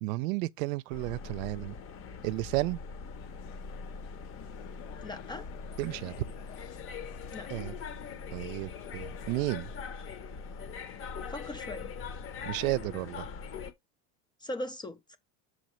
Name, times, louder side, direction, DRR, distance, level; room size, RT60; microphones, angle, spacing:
voice 1, 0.0-1.8 2.2-2.8 5.8-6.3 7.5-7.8 8.3-9.7 12.5-13.3, right 20 dB, 80° right, 0.6 m, -32 dB
sound 1, 0.9-13.7, left 5 dB, 30° left, 0.8 m, -42 dB
sound 2, 3.1-9.8, left 12 dB, 80° left, 1.3 m, -52 dB
voice 2, 5.0-5.5 7.3-7.5 11.3-11.9 14.4-15.2, left 1 dB, 10° left, 0.3 m, -39 dB
6.3 x 5.1 x 3.0 m
supercardioid pair, 140°, 40 cm